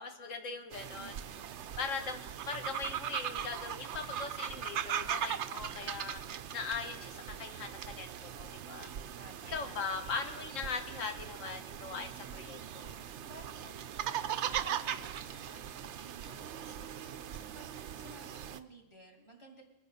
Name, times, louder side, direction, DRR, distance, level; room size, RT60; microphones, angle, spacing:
voice 1, 0.0-1.2 1.8-6.2 6.5-8.9 9.5-12.9, left 5 dB, 75° left, 6 dB, 1.6 m, -40 dB
sound 1, 0.7-18.6, right 9 dB, 65° right, 0.9 m, -40 dB
voice 2, 1.0-1.7 5.4-6.0 9.1-10.6 13.2-19.6, right 1 dB, 20° left, 0 dB, 2.5 m, -56 dB
23.5 x 9.9 x 4.2 m, 1.0 s
omnidirectional pair, 1.3 m